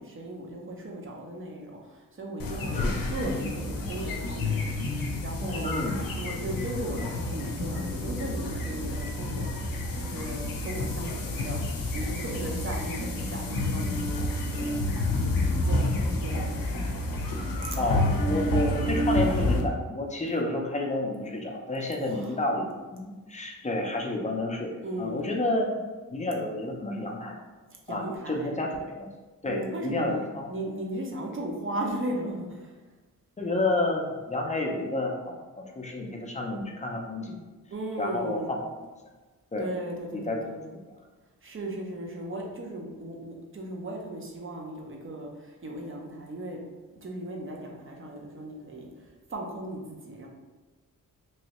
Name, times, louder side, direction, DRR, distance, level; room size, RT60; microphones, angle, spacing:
voice 1, 0.0-5.7 6.2-16.8 21.9-22.4 24.8-25.2 27.7-28.6 29.5-32.8 37.7-38.5 39.6-40.7 41.4-46.6 46.9-50.3, right 1 dB, 35° right, 0 dB, 0.7 m, -37 dB
sound 1, 2.4-19.6, left 1 dB, 80° left, 0.6 m, -29 dB
voice 2, 5.6-6.0 17.8-25.8 26.1-27.4 27.9-29.1 29.4-30.5 33.4-37.4 38.0-38.6 39.5-39.7 40.1-40.5, left 2 dB, 20° left, 0 dB, 0.5 m, -30 dB
3.1 x 2.7 x 3.0 m, 1.2 s
wide cardioid pair, 95°, 34 cm